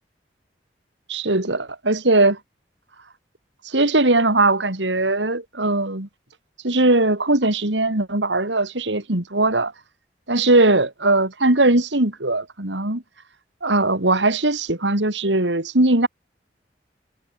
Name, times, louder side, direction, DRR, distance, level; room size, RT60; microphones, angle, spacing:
voice 1, 1.1-2.4 3.6-6.1 6.6-9.7 10.3-13.0 13.6-16.1, right 2 dB, 85° right, 3.3 m, -19 dB
head